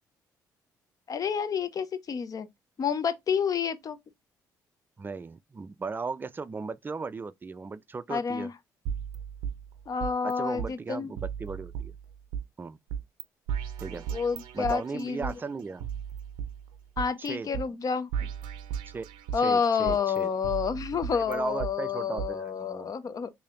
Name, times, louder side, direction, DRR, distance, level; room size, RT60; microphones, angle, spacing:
voice 1, 1.1-2.5 2.8-4.0 8.1-8.5 9.9-11.1 14.1-15.4 17.0-18.3 19.3-23.3, left 6 dB, 45° left, 0.6 m, -29 dB
voice 2, 5.0-8.5 10.2-11.9 12.6-12.8 13.8-14.1 14.5-15.8 17.2-17.5 18.9-19.0 19.3-20.3 21.1-22.9, right 4 dB, 25° right, 0.4 m, -36 dB
sound 1, 8.9-10.3 10.6-10.7 11.2-12.4 12.9-13.2 13.5-15.3 15.8-17.3 17.5-17.6 18.1-19.5 19.9-21.7 22.2-22.3, right 8 dB, 85° right, 0.5 m, -35 dB
3.2 x 2.7 x 3.7 m
supercardioid pair, 65°, 8 cm